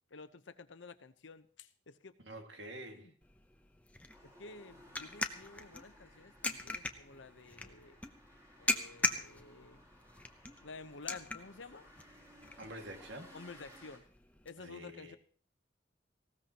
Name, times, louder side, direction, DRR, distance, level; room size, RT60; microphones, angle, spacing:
voice 1, 0.1-2.2 2.9-3.1 4.2-8.0 8.6-9.8 10.6-11.9 13.3-14.0 14.4-15.2, left 4 dB, 85° left, 0.9 m, -51 dB
voice 2, 2.2-3.1 12.6-13.4 14.6-15.2, right 1 dB, 75° right, 2.1 m, -47 dB
sound 1, 3.2-14.5, left 2 dB, 10° left, 0.8 m, -41 dB
sound 2, 4.1-14.0, equal, 20° right, 3.9 m, -60 dB
19.0 x 16.5 x 3.0 m
head